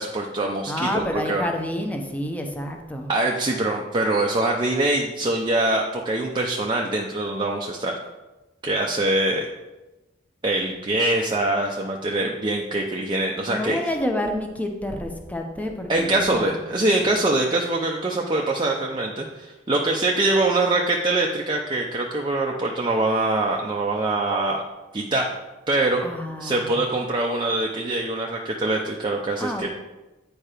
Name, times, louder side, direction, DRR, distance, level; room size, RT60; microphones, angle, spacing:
voice 1, 0.0-1.4 3.1-7.9 8.6-9.5 10.4-13.8 15.9-24.6 24.9-25.3 25.7-26.0 26.4-29.7, right 2 dB, 25° right, 0 dB, 0.6 m, -23 dB
voice 2, 0.7-3.1 13.5-16.6 26.0-26.8 29.4-29.7, left 1 dB, 10° left, 3 dB, 0.9 m, -29 dB
8.7 x 4.6 x 5.0 m, 1.1 s
head